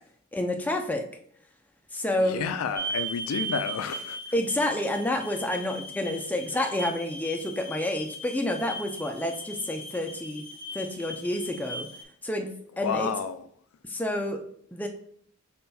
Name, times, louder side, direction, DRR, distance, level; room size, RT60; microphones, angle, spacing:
voice 1, 0.3-1.1 1.9-2.4 4.3-10.5 10.7-11.9 12.2-13.1 13.8-14.4 14.7-14.9, left 1 dB, 10° left, 0.4 m, -29 dB
voice 2, 2.3-4.2 12.8-13.4, left 6 dB, 85° left, 0.3 m, -30 dB
sound 1, 2.7-12.0, right 2 dB, 25° right, 1.0 m, -38 dB
5.4 x 4.2 x 2.3 m
head